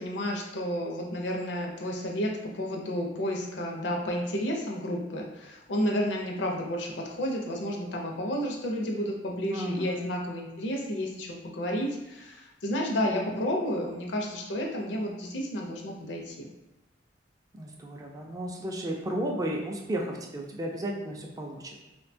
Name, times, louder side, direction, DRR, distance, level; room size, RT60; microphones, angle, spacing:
voice 1, 0.0-16.5, equal, 75° left, 0 dB, 0.5 m, -31 dB
voice 2, 9.5-10.2 17.5-21.8, right 1 dB, 20° right, -1 dB, 0.3 m, -34 dB
2.7 x 2.2 x 2.6 m, 0.97 s
head